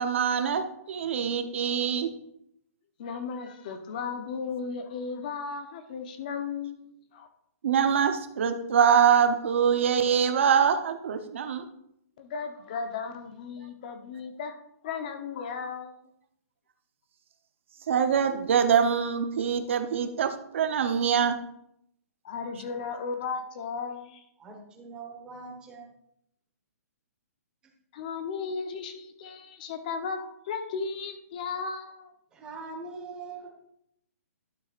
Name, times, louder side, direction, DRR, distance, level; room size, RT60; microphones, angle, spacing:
voice 1, 0.0-2.1 7.6-11.7 17.9-21.4, right 7 dB, 50° right, 7 dB, 0.9 m, -24 dB
voice 2, 3.0-7.3 12.2-14.6 14.8-15.9 22.2-24.2 27.9-32.1, left 5 dB, 30° left, 7 dB, 0.9 m, -35 dB
voice 3, 24.4-25.9 32.3-33.5, right 4 dB, 10° right, 0 dB, 1.3 m, -42 dB
12.0 x 7.4 x 2.5 m, 0.74 s
hypercardioid pair, 175°, 9 cm